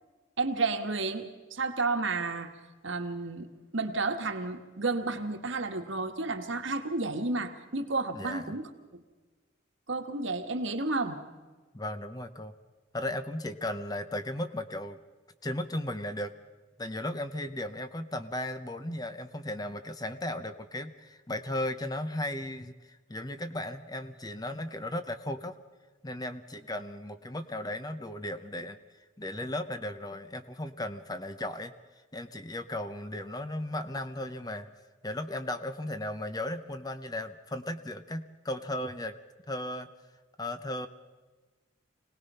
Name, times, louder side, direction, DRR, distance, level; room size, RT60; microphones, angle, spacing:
voice 1, 0.4-2.5 2.8-3.5 3.7-8.6 9.9-11.2, right 3 dB, 75° right, 6 dB, 1.6 m, -31 dB
voice 2, 8.1-8.6 11.7-12.5 12.9-15.0 15.4-16.3 16.8-25.6 26.0-28.8 29.2-31.7 32.1-34.7 35.0-39.2 39.5-39.9 40.4-40.9, left 1 dB, 20° left, 10 dB, 0.8 m, -36 dB
26.0 x 18.5 x 5.6 m, 1.3 s
head